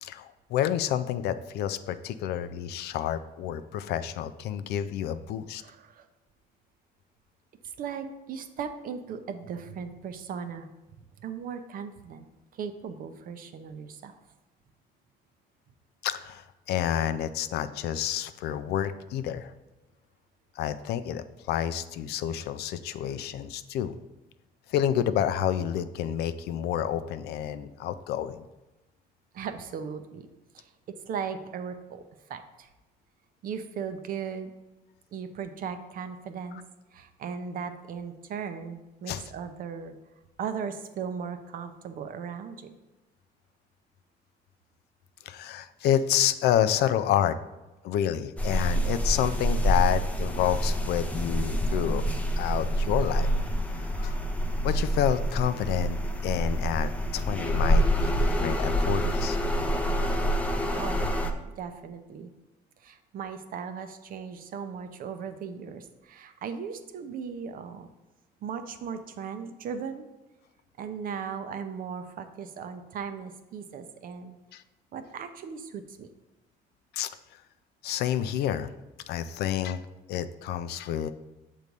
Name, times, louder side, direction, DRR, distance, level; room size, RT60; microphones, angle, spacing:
voice 1, 0.0-5.6 16.0-19.5 20.6-23.9 24.7-28.4 39.1-39.2 45.3-47.4 47.8-52.1 52.4-53.3 53.9-54.2 54.6-59.4 74.5-74.6 76.9-77.1 77.8-78.7 79.1-81.1, left 10 dB, 75° left, 12 dB, 0.4 m, -29 dB
voice 2, 5.6-6.1 7.6-10.7 11.2-12.3 12.5-14.2 29.3-30.3 30.5-30.7 31.1-32.0 32.3-32.7 33.4-34.5 35.1-36.6 36.9-40.0 40.4-42.8 60.1-60.2 60.5-61.1 61.4-62.3 62.8-67.9 68.4-70.1 70.8-74.4 74.9-76.1, right 6 dB, 60° right, 9 dB, 0.6 m, -37 dB
sound 1, 48.4-61.3, equal, 10° left, 0.6 m, -27 dB
6.7 x 3.1 x 5.2 m, 1.1 s
cardioid pair, 110°, 17 cm